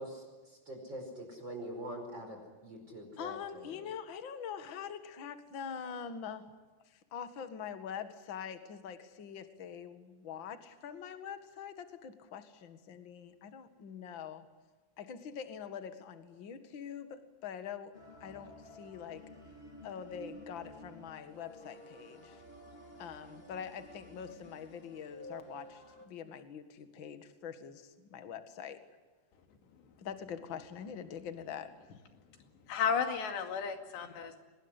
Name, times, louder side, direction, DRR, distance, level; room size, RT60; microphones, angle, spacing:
voice 1, 0.0-3.8, right 1 dB, 25° right, 2 dB, 5.4 m, -44 dB
voice 2, 3.2-6.4 7.1-14.4 15.0-19.2 19.8-22.4 23.0-28.8 30.0-32.0, left 7 dB, 45° left, 9 dB, 1.5 m, -44 dB
sound 1, 17.9-26.1, equal, 15° left, 2.3 m, -52 dB
voice 3, 32.7-34.4, left 6 dB, 85° left, 6 dB, 4.5 m, -33 dB
25.5 x 20.0 x 9.9 m, 1.3 s
omnidirectional pair, 4.9 m